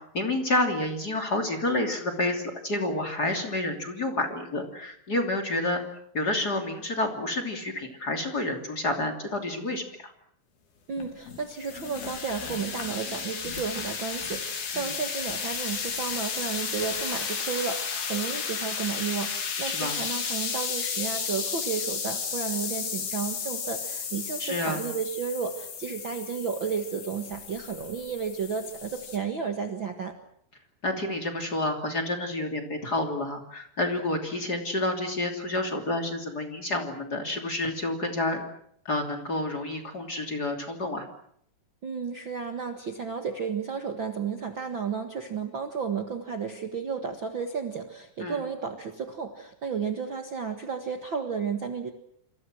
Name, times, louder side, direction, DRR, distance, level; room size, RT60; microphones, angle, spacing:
voice 1, 0.1-5.8 6.1-10.1 14.7-14.9 19.6-20.0 24.4-24.9 30.8-38.4 38.8-41.1 48.2-48.4, left 2 dB, 25° left, 3 dB, 3.2 m, -29 dB
voice 2, 10.9-30.1 41.8-51.9, right 6 dB, 45° right, 5 dB, 1.8 m, -32 dB
sound 1, 11.0-29.2, left 6 dB, 80° left, 5.4 m, -33 dB
28.0 x 26.5 x 6.3 m, 0.69 s
omnidirectional pair, 4.3 m